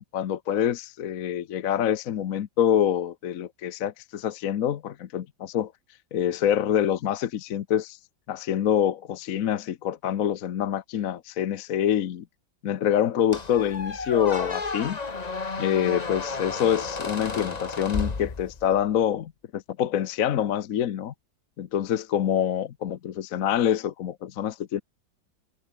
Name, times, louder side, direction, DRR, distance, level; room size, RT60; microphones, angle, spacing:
voice 1, 0.0-5.7 6.1-8.0 8.3-12.2 12.6-15.0 15.6-21.1 21.6-24.8, left 10 dB, 55° left, 1.1 m, -26 dB
Squeak, 13.3-18.8, left 4 dB, 25° left, 1.3 m, -32 dB
omnidirectional pair, 2.1 m